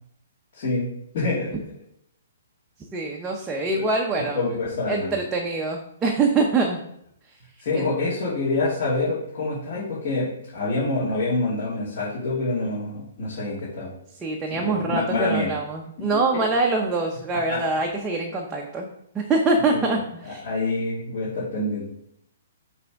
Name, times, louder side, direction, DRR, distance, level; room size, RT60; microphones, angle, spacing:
voice 1, 0.5-0.9 1.1-1.5 3.7-3.8 4.3-5.2 7.6-13.9 14.6-15.5 16.0-16.2 17.5-17.6 19.7-19.9 20.3-21.9, left 2 dB, 45° left, -10 dB, 2.8 m, -26 dB
voice 2, 2.9-4.4 4.9-6.8 7.7-7.9 14.2-18.9 19.1-20.4, right 3 dB, 10° right, -1 dB, 0.7 m, -24 dB
7.5 x 3.4 x 4.7 m, 0.76 s
hypercardioid pair, 160°, 0 cm